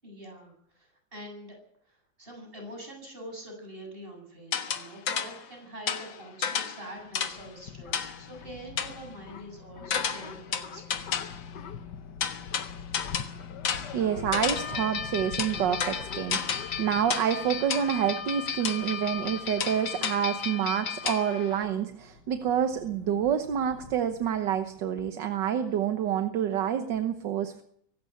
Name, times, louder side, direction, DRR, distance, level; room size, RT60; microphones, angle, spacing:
voice 1, 0.0-1.6 1.8-11.1, equal, 30° right, 2 dB, 8.4 m, -45 dB
sound 1, 4.5-5.5 5.9-7.5 7.9-8.3 8.8-9.0 9.9-11.5 12.2-14.8 15.4-16.8 17.1-17.4 17.7-17.9 18.6-18.8 19.6-20.3 21.1-21.2, left 7 dB, 85° left, 2.2 m, -32 dB
sound 2, 7.0-25.1, left 7 dB, 65° left, 1.7 m, -45 dB
voice 2, 13.9-27.6, right 9 dB, 70° right, 8 dB, 1.7 m, -28 dB
sound 3, 14.5-21.6, left 7 dB, 50° left, 1.3 m, -36 dB
24.0 x 13.0 x 8.5 m, 0.68 s
omnidirectional pair, 2.0 m